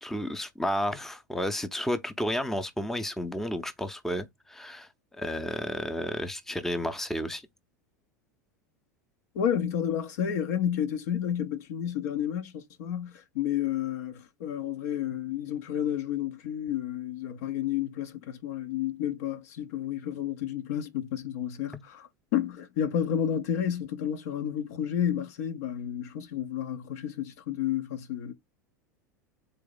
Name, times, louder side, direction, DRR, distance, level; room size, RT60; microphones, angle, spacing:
voice 1, 0.0-7.4, equal, 5° left, 0.7 m, -32 dB
voice 2, 9.3-28.3, left 9 dB, 60° left, 0.7 m, -31 dB
4.0 x 2.7 x 3.9 m
figure-of-eight pair, 85°, 10 cm